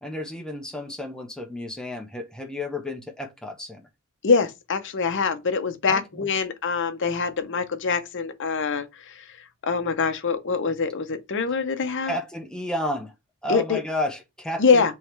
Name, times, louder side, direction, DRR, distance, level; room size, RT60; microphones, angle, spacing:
voice 1, 0.0-3.8 5.9-6.3 12.1-13.1 13.4-14.9, left 1 dB, 5° left, 0.8 m, -32 dB
voice 2, 4.2-9.3 9.6-12.2 13.5-13.8 14.6-14.9, left 5 dB, 55° left, 0.7 m, -24 dB
3.5 x 3.1 x 4.5 m
head